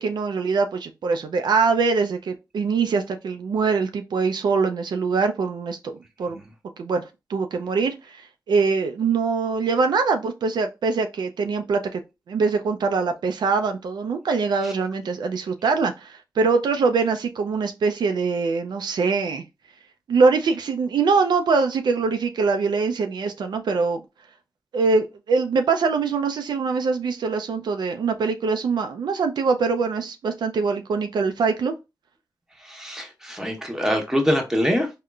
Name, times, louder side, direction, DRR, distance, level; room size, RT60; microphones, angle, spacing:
voice 1, 0.0-5.9 6.2-6.4 6.8-7.0 7.3-12.0 12.3-19.4 20.1-24.0 24.7-31.7, right 4 dB, 80° right, 0.3 m, -23 dB
voice 2, 32.6-34.9, equal, 5° right, 1.0 m, -24 dB
3.6 x 2.1 x 2.2 m
cardioid pair, 55°, 7 cm